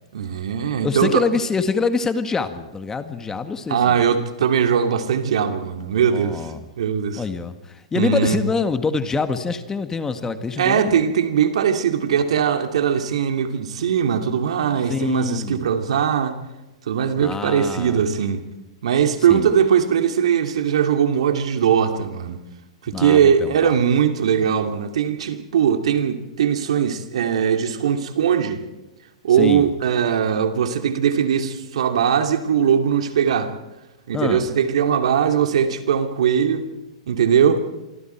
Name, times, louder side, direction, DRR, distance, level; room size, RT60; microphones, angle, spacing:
voice 1, 0.1-1.2 3.7-6.5 6.8-7.2 7.9-8.4 10.6-16.4 16.9-18.4 18.8-22.4 22.8-28.6 29.2-33.5 34.1-36.7 37.1-37.6, right 8 dB, 70° right, 2.7 m, -20 dB
voice 2, 0.8-4.0 6.0-6.7 7.2-11.0 14.9-15.6 17.2-18.1 19.3-19.5 22.9-23.8 29.4-29.7 34.1-34.5, left 4 dB, 15° left, 1.8 m, -25 dB
28.5 x 24.5 x 4.6 m
hypercardioid pair, 120°, 3 cm